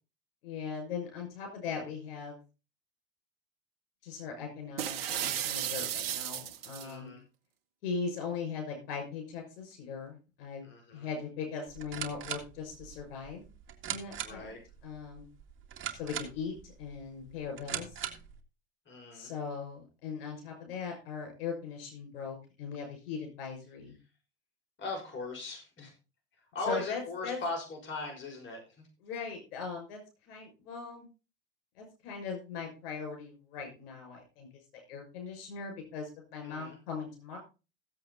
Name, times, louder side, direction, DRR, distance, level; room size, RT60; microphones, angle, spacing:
voice 1, 0.4-2.4 4.0-7.2 7.8-10.6 10.9-13.4 13.9-14.5 14.8-15.3 15.9-17.9 19.1-24.0 26.7-27.4 29.0-30.0 30.3-31.1 31.8-34.5 34.7-37.4, left 5 dB, 70° left, 3 dB, 6.1 m, -39 dB
sound 1, 4.8-6.9, right 10 dB, 80° right, 1.1 m, -34 dB
voice 2, 6.8-7.2 10.6-11.1 14.2-14.6 18.9-19.3 24.8-25.9 26.5-28.6 36.4-36.8, left 3 dB, 40° left, 2 dB, 6.0 m, -39 dB
sound 2, 11.7-18.4, right 9 dB, 40° right, 2.4 m, -41 dB
15.5 x 8.1 x 4.0 m, 0.31 s
hypercardioid pair, 80°, 29 cm